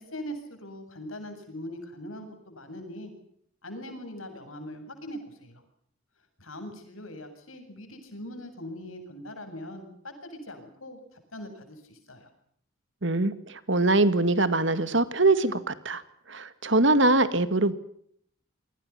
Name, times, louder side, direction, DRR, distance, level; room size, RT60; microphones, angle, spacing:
voice 1, 0.0-3.1 3.6-5.6 6.4-12.3, equal, 80° left, 7 dB, 7.8 m, -41 dB
voice 2, 13.0-16.0 16.3-17.8, right 2 dB, 60° right, 13 dB, 2.1 m, -23 dB
28.5 x 24.5 x 5.9 m, 0.66 s
head